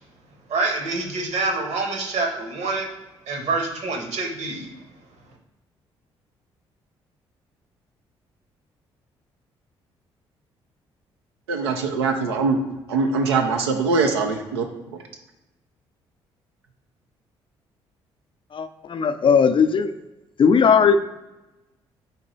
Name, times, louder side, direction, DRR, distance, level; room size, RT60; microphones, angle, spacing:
voice 1, 0.5-2.9 3.3-4.7, right 3 dB, 60° right, 2 dB, 1.2 m, -26 dB
voice 2, 11.5-12.6 12.9-14.6, right 4 dB, 90° right, 4 dB, 0.4 m, -22 dB
voice 3, 18.5-19.9 20.4-21.0, left 6 dB, 40° left, 10 dB, 0.4 m, -17 dB
3.9 x 2.9 x 4.0 m, 1.0 s
hypercardioid pair, 45°, 13 cm